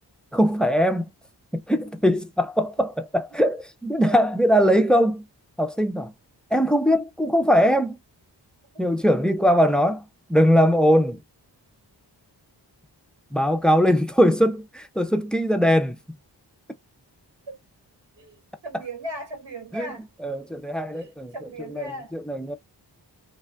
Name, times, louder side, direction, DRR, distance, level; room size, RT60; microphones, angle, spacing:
voice 1, 0.3-1.1 1.5-5.2 5.6-6.1 6.5-8.0 8.8-10.0 10.3-11.2 13.3-16.0 19.7-19.9 20.2-21.3 21.7-22.6, equal, ahead, 0.4 m, -21 dB
voice 2, 18.1-20.1 20.9-22.1, right 1 dB, 85° right, 1.6 m, -37 dB
2.6 x 2.3 x 2.2 m
cardioid pair, 50°, 42 cm